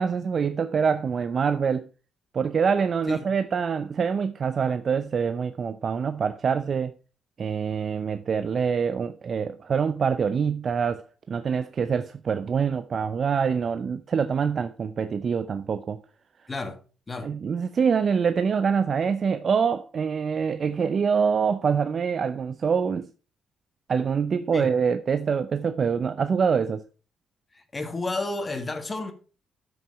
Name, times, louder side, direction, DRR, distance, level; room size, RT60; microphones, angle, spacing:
voice 1, 0.0-1.9 2.3-6.9 7.4-16.0 17.2-23.1 23.9-26.8, right 6 dB, 50° right, 0.6 m, -25 dB
voice 2, 27.5-29.1, left 2 dB, 25° left, 1.7 m, -31 dB
9.3 x 6.3 x 4.7 m
cardioid pair, 90°, 0 cm